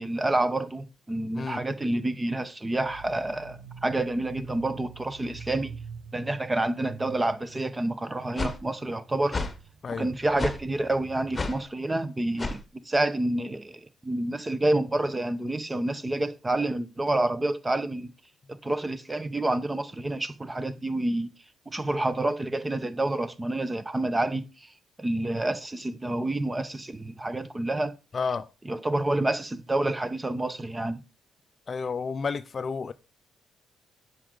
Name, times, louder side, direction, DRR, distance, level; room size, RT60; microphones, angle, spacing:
voice 1, 0.0-5.7 6.1-9.4 10.0-18.1 18.5-21.3 21.7-24.5 25.0-27.9 28.6-31.0, right 2 dB, 20° right, 0.9 m, -28 dB
sound 1, 2.7-11.7, right 6 dB, 65° right, 1.0 m, -47 dB
sound 2, 8.4-8.6 9.3-9.5 10.4-10.6 11.3-11.6 12.4-12.6, left 3 dB, 25° left, 1.1 m, -30 dB
voice 2, 28.1-28.5 31.7-32.9, left 5 dB, 40° left, 0.5 m, -31 dB
9.8 x 6.2 x 3.8 m
cardioid pair, 90°, 0 cm